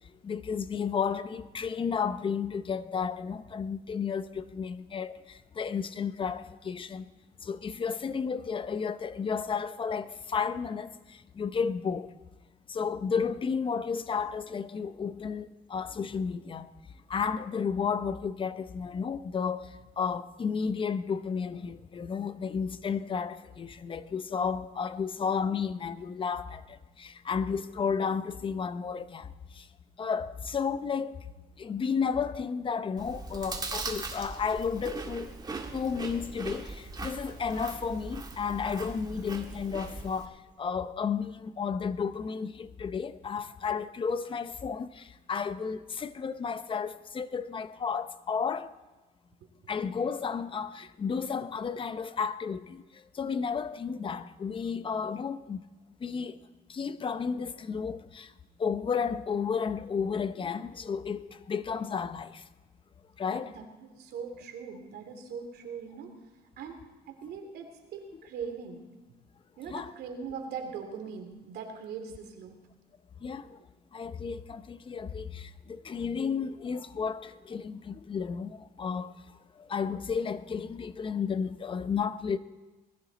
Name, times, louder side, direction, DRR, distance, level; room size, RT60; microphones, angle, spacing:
voice 1, 0.2-7.1 7.4-12.1 12.7-16.7 17.1-29.3 29.5-29.7 30.0-31.2 31.6-35.3 35.7-48.7 49.7-52.8 53.1-55.6 56.0-56.4 56.7-58.3 58.6-62.4 63.2-63.5 69.7-69.9 73.2-73.6 73.9-79.2 79.6-82.4, left 6 dB, 30° left, 0.7 m, -32 dB
Chewing mastication, 33.0-40.3, right 3 dB, 25° right, 1.9 m, -40 dB
voice 2, 63.3-66.1 66.6-66.8 67.1-68.9 69.6-72.6, right 6 dB, 75° right, 2.7 m, -41 dB
20.0 x 14.0 x 4.1 m
cardioid pair, 110°, 17 cm